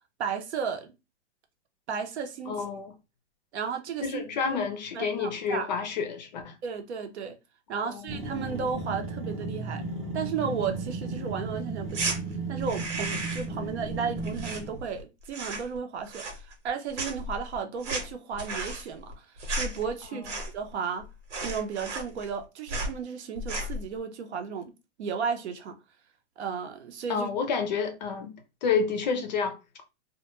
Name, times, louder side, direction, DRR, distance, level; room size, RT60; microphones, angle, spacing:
voice 1, 0.2-0.9 1.9-2.6 3.5-4.2 4.5-4.6 4.9-5.7 6.6-7.4 7.7-9.8 10.1-12.1 12.5-20.3 20.5-21.0 21.4-24.7 25.0-25.7 26.4-27.3, right 6 dB, 65° right, 0.7 m, -34 dB
voice 2, 2.5-2.9 4.0-6.5 7.7-8.0 27.1-28.3 28.6-29.6, left 5 dB, 40° left, 0.5 m, -29 dB
sound 1, 8.1-14.8, right 3 dB, 20° right, 0.6 m, -35 dB
sound 2, 11.9-12.2 12.6-13.6 13.8-15.0 15.3-15.8 16.1-16.7 16.9-20.7 21.0-21.1 21.3-22.4 22.7-23.0 23.4-23.8, right 2 dB, 90° right, 1.2 m, -34 dB
2.2 x 2.2 x 2.9 m
hypercardioid pair, 150°, 36 cm